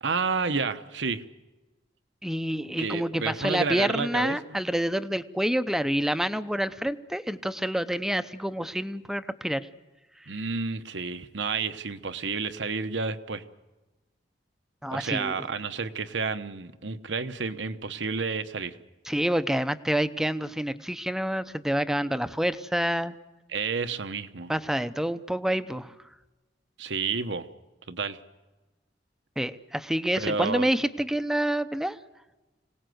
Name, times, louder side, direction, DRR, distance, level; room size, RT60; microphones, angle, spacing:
voice 1, 0.0-1.2 2.8-4.6 10.3-13.4 14.9-18.8 23.5-24.5 26.8-27.5 27.9-28.2 30.1-30.7, right 4 dB, 80° right, 10 dB, 1.1 m, -30 dB
voice 2, 2.2-9.7 10.3-10.4 14.8-15.5 19.1-23.1 24.5-25.9 29.4-32.0, right 1 dB, 5° right, 11 dB, 0.7 m, -28 dB
26.0 x 18.0 x 7.9 m, 1.1 s
head